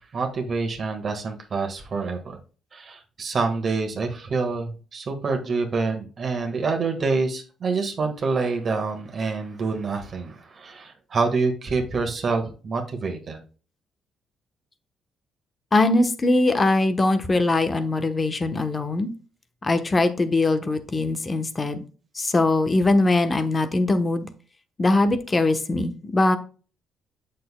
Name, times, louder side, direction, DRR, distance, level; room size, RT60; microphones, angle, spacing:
voice 1, 0.1-2.4 2.7-13.4, right 4 dB, 50° right, 3 dB, 1.5 m, -27 dB
voice 2, 15.7-19.1 19.6-21.8 22.2-24.3 24.8-26.4, left 2 dB, 30° left, 9 dB, 0.9 m, -21 dB
7.8 x 6.6 x 2.2 m, 0.37 s
cardioid pair, 90°, 0 cm